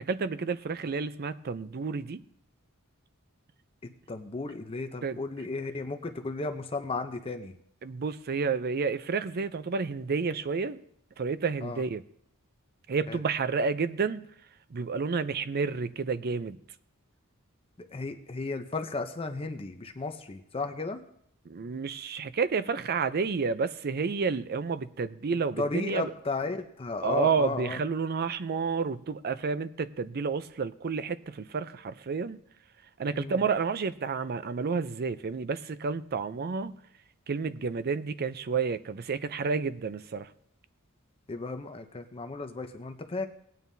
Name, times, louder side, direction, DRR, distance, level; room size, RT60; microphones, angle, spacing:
voice 1, 0.0-2.2 5.0-5.2 7.8-10.8 11.2-12.0 12.9-14.3 14.7-16.6 21.5-26.1 27.0-32.4 33.0-36.8 37.3-40.3, right 5 dB, 45° right, 13 dB, 0.5 m, -30 dB
voice 2, 4.1-7.6 11.6-11.8 13.1-13.2 17.8-21.0 25.6-27.8 33.1-33.4 41.3-43.3, left 3 dB, 25° left, 7 dB, 0.6 m, -34 dB
19.0 x 9.2 x 2.7 m, 0.70 s
head